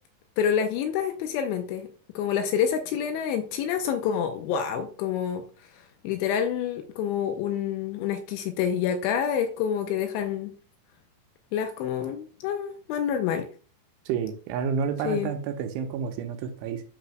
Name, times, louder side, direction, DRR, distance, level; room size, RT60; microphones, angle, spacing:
voice 1, 0.4-1.9 2.2-5.4 6.0-10.5 11.5-13.5 15.0-15.3, left 8 dB, 85° left, 6 dB, 2.8 m, -27 dB
voice 2, 14.1-16.8, right 7 dB, 85° right, 6 dB, 2.9 m, -30 dB
12.0 x 4.1 x 2.2 m, 0.40 s
omnidirectional pair, 5.9 m